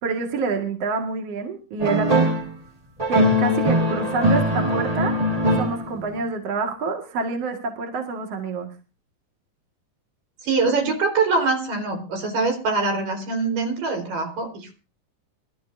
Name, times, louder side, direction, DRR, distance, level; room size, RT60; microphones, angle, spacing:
voice 1, 0.0-2.3 3.1-5.2 5.6-8.7, right 4 dB, 50° right, 3 dB, 2.6 m, -27 dB
sound 1, 1.8-2.5 3.0-6.1, equal, 15° right, 1.4 m, -21 dB
voice 2, 10.4-14.8, right 3 dB, 70° right, 4 dB, 5.8 m, -24 dB
27.0 x 13.5 x 2.7 m, 0.32 s
omnidirectional pair, 4.1 m